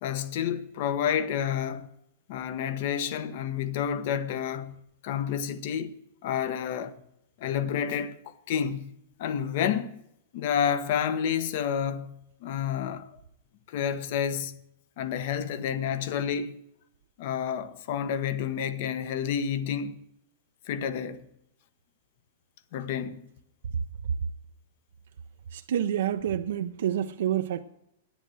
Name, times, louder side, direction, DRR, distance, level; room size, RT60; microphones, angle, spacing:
voice 1, 0.0-1.9 2.3-4.8 5.0-5.9 6.2-7.0 7.4-8.9 9.2-9.9 10.3-13.1 13.7-14.6 15.0-16.6 17.2-20.0 20.6-21.2 22.7-23.2, left 8 dB, 55° left, 1.0 m, -29 dB
voice 2, 25.5-27.6, right 10 dB, 75° right, 0.6 m, -28 dB
10.5 x 8.9 x 7.8 m
hypercardioid pair, 145°, 0 cm